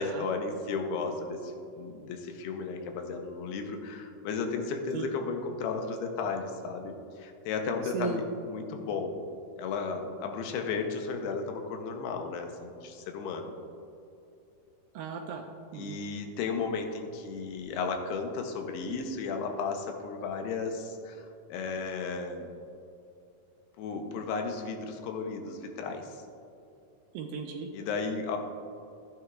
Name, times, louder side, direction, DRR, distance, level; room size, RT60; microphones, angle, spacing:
voice 1, 0.0-8.2 8.5-9.2 9.6-13.5 15.8-22.5 23.8-26.2 27.7-28.4, left 4 dB, 90° left, 4 dB, 2.9 m, -34 dB
voice 2, 7.8-8.2 14.9-15.5 15.7-16.0 27.1-27.7, right 7 dB, 80° right, 3 dB, 2.1 m, -36 dB
14.5 x 9.1 x 2.4 m, 2.6 s
omnidirectional pair, 4.6 m